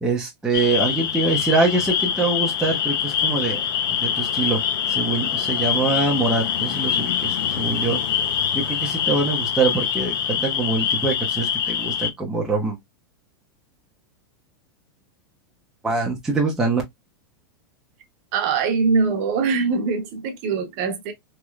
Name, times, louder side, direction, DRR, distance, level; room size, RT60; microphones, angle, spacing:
voice 1, 0.0-3.6 3.9-4.6 4.9-8.0 8.5-12.8 15.8-16.8, right 3 dB, 5° right, 0.6 m, -24 dB
sound 1, 0.5-12.1, left 8 dB, 60° left, 0.6 m, -24 dB
voice 2, 18.3-21.1, right 5 dB, 40° right, 0.9 m, -22 dB
3.1 x 3.0 x 2.3 m
supercardioid pair, 165°, 13 cm